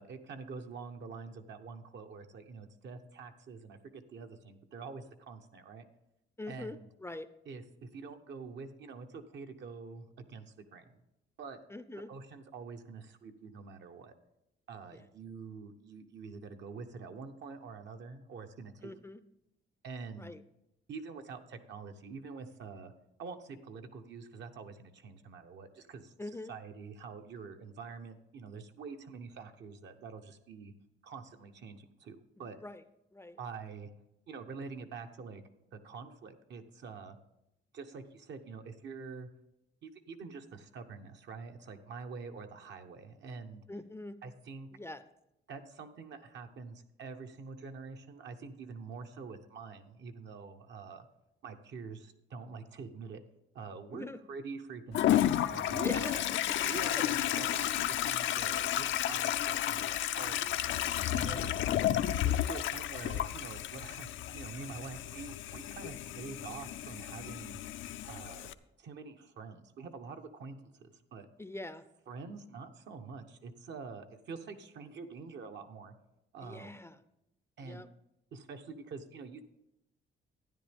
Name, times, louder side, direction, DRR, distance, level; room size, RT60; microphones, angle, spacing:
voice 1, 0.0-5.8 6.5-6.9 7.5-10.8 11.4-11.6 12.1-14.1 14.7-18.9 19.8-20.3 20.9-22.9 23.2-26.1 26.5-30.7 31.0-32.6 33.4-33.9 34.3-35.4 35.7-37.2 37.7-39.3 39.8-43.6 44.2-44.7 45.5-51.1 51.4-53.2 53.5-56.2 56.6-60.8 61.1-61.5 62.1-67.6 68.1-68.5 68.8-71.3 72.1-75.9 76.3-76.7 77.6-77.8 78.3-79.4, right 5 dB, 65° right, 6 dB, 1.0 m, -46 dB
voice 2, 6.4-7.3 11.7-12.1 14.9-15.0 18.8-19.2 20.2-20.4 26.2-26.5 32.4-32.8 33.1-33.4 43.7-44.2 44.7-45.0 53.9-54.2 55.8-56.2 56.5-56.6 61.2-61.7 71.4-71.8 76.4-77.0 77.6-77.9, left 2 dB, 10° left, 12 dB, 0.5 m, -43 dB
Toilet flush, 54.9-68.5, left 12 dB, 75° left, 0.5 m, -32 dB
12.5 x 9.8 x 3.5 m, 0.87 s
cardioid pair, 90°, 20 cm